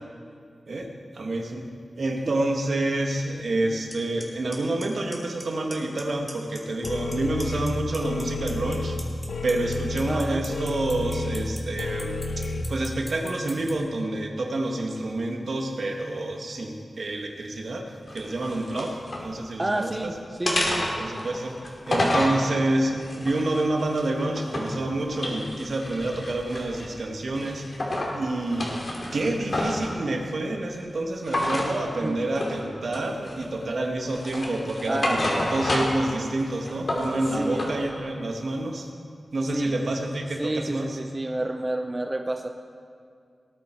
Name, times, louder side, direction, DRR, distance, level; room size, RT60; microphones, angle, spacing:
voice 1, 1.1-1.7 2.0-9.0 9.4-17.9 18.1-20.1 21.0-21.6 21.9-27.6 28.1-28.7 29.1-38.9 39.3-41.0, right 2 dB, 65° right, 2 dB, 1.7 m, -28 dB
Clock, 3.9-4.0 4.2-4.6 4.8-5.4 5.7-6.0 6.3-7.1 7.4-13.7, left 1 dB, 10° left, 2.5 m, -39 dB
sound 1, 6.8-12.6, left 2 dB, 75° left, 0.9 m, -31 dB
voice 2, 10.1-10.4 19.6-20.9 32.0-32.3 34.9-35.2 37.3-37.7 39.5-39.9 40.4-42.5, right 1 dB, 20° right, 4 dB, 0.6 m, -29 dB
sound 2, 18.1-19.3 19.7-20.0 20.5-22.4 23.0-24.8 25.1-26.9 27.4-28.1 28.5-29.9 31.3-31.7 32.4-32.6 32.9-33.6 34.1-36.1 36.4-37.7, left 1 dB, 50° left, 2.7 m, -29 dB
19.0 x 10.0 x 4.6 m, 2.3 s
wide cardioid pair, 85°, 0 cm